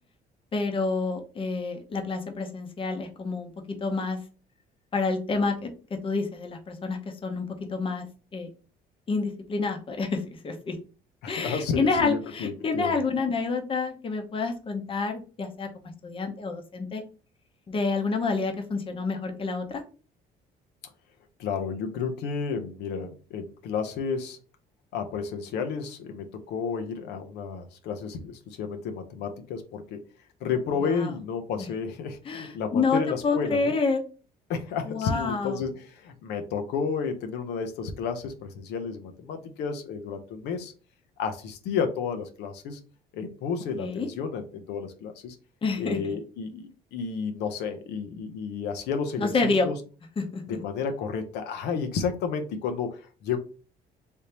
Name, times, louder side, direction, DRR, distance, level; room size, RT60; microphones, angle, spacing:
voice 1, 0.5-4.2 4.9-8.1 8.3-8.5 9.1-10.8 11.3-17.0 17.7-19.8 30.8-31.1 31.6-31.7 32.2-34.0 34.8-35.6 43.8-44.1 45.6-46.0 49.2-49.7 50.2-50.6, left 4 dB, 30° left, 5 dB, 0.8 m, -28 dB
voice 2, 11.2-13.0 21.4-24.4 24.9-30.0 30.4-33.7 34.5-40.7 41.2-42.8 43.1-45.4 45.8-49.8 50.5-53.4, left 6 dB, 80° left, 6 dB, 0.6 m, -31 dB
3.4 x 2.7 x 2.9 m, 0.36 s
cardioid pair, 110°, 17 cm